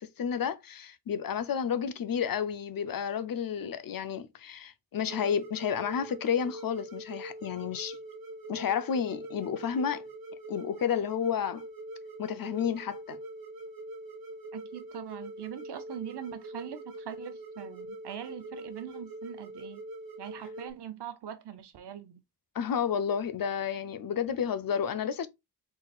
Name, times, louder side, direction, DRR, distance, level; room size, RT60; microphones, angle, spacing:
voice 1, 0.0-8.0 8.5-10.0 10.5-11.6 12.2-13.2 22.5-25.3, left 7 dB, 60° left, 0.6 m, -31 dB
sound 1, 5.1-20.7, right 1 dB, 60° right, 1.2 m, -43 dB
voice 2, 14.5-19.8 20.2-22.2, right 9 dB, 80° right, 0.9 m, -42 dB
4.0 x 4.0 x 2.3 m
wide cardioid pair, 145°, 40 cm